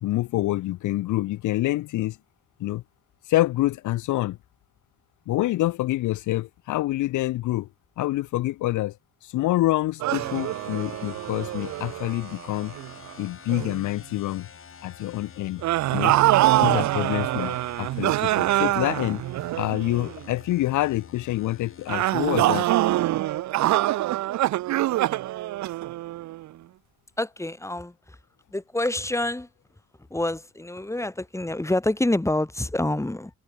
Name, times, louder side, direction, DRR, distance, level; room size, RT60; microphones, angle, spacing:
voice 1, 0.0-2.2 2.6-2.8 3.3-4.4 5.3-7.7 8.0-9.0 9.2-12.7 13.2-14.5 14.8-15.6 15.9-16.1 16.6-19.2 19.6-22.7, left 16 dB, 80° left, 0.7 m, -26 dB
sound 1, 10.0-13.1 13.5-13.8 15.6-20.2 21.9-26.5, right 15 dB, 70° right, 0.6 m, -24 dB
sound 2, 10.1-22.5, left 7 dB, 45° left, 4.6 m, -48 dB
voice 2, 27.2-28.2 28.5-29.5 30.1-33.3, left 1 dB, 10° left, 3.5 m, -27 dB
cardioid pair, 90°, 30 cm